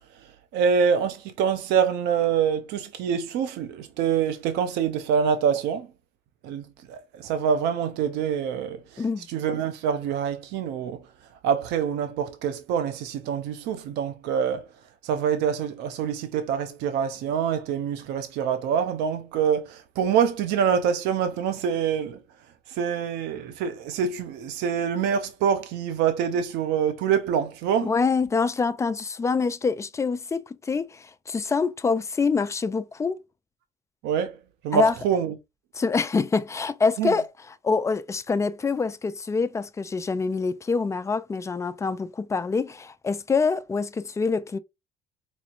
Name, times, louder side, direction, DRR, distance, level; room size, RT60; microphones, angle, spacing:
voice 1, 0.5-5.9 6.4-8.8 9.3-11.0 11.4-14.6 15.0-22.2 22.7-27.9 34.0-34.3 34.6-35.3 37.0-37.1, right 7 dB, 90° right, 0.6 m, -25 dB
voice 2, 27.8-33.2 34.7-34.9 35.7-44.6, left 4 dB, 15° left, 0.3 m, -25 dB
4.1 x 3.0 x 2.5 m
cardioid pair, 110°, 17 cm